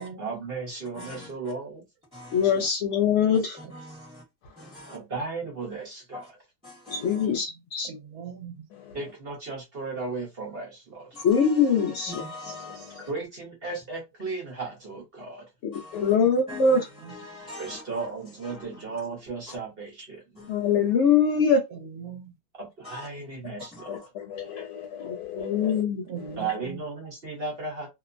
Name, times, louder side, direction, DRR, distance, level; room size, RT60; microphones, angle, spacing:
voice 1, 0.2-1.8 4.9-6.3 8.9-11.1 13.1-15.5 17.6-20.2 22.6-23.9 26.4-27.9, right 4 dB, 45° right, 1.0 m, -35 dB
voice 2, 0.9-1.3 2.1-2.7 3.7-4.2 4.6-5.0 6.1-6.2 6.6-7.3 11.1-13.1 15.7-16.1 16.5-16.7 17.0-18.1 18.4-18.8 19.5-19.6 20.4-20.7 22.8-23.1 23.7-23.9, left 2 dB, 5° right, 0.9 m, -43 dB
voice 3, 2.3-3.6 6.9-7.9 11.2-12.2 15.6-16.9 20.5-21.6 25.0-26.0, left 6 dB, 65° left, 0.7 m, -23 dB
voice 4, 6.9-7.3 8.7-9.0 12.5-13.1 15.9-16.2 23.9-25.8 26.2-26.3, left 8 dB, 85° left, 1.1 m, -39 dB
voice 5, 7.8-8.7 12.2-13.0 16.7-17.1 21.7-22.3 26.1-26.8, right 6 dB, 75° right, 1.2 m, -41 dB
2.9 x 2.1 x 2.4 m
omnidirectional pair, 1.6 m